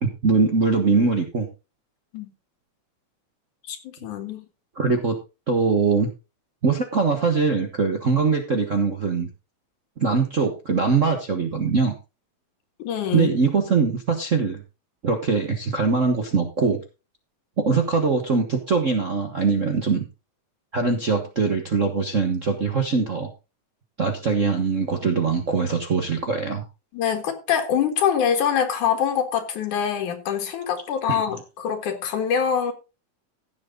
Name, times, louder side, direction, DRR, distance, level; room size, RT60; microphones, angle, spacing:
voice 1, 0.0-1.5 4.8-5.2 5.5-6.1 6.6-9.3 10.0-11.9 13.1-14.6 15.0-16.8 17.6-20.0 20.7-23.3 24.0-26.6 31.1-31.2, right 4 dB, 65° right, 0.7 m, -22 dB
voice 2, 3.7-4.5 12.8-13.3 26.9-32.7, left 8 dB, 90° left, 3.2 m, -24 dB
15.5 x 7.5 x 3.8 m
omnidirectional pair, 3.4 m